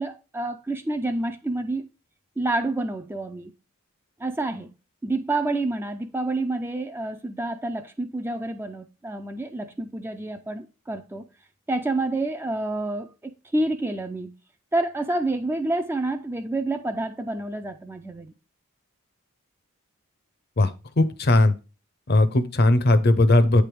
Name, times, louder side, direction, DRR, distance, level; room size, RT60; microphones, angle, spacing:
voice 1, 0.0-1.9 2.4-3.5 4.2-4.7 5.0-11.2 11.7-14.3 14.7-18.3, right 2 dB, 10° right, 0.3 m, -28 dB
voice 2, 21.0-21.5 22.1-23.6, left 2 dB, 45° left, 0.6 m, -18 dB
8.3 x 3.4 x 4.6 m
head